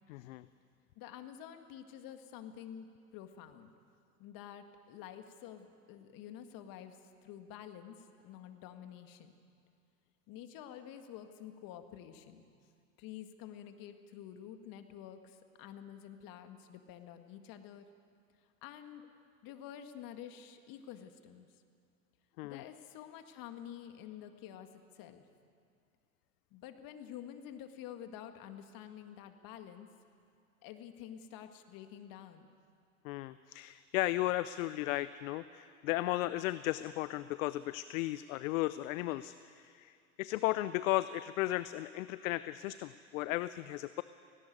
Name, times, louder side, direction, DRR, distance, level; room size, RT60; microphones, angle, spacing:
voice 1, 0.1-0.5 22.4-22.6 33.0-44.0, left 16 dB, 65° left, 15 dB, 0.7 m, -35 dB
voice 2, 1.0-3.8 4.2-9.3 10.3-12.4 13.0-17.9 18.6-19.1 19.4-21.5 22.4-25.2 26.5-29.9 30.6-32.5, left 10 dB, 50° left, 7 dB, 2.0 m, -49 dB
18.0 x 17.5 x 9.5 m, 2.3 s
hypercardioid pair, 90°, 43 cm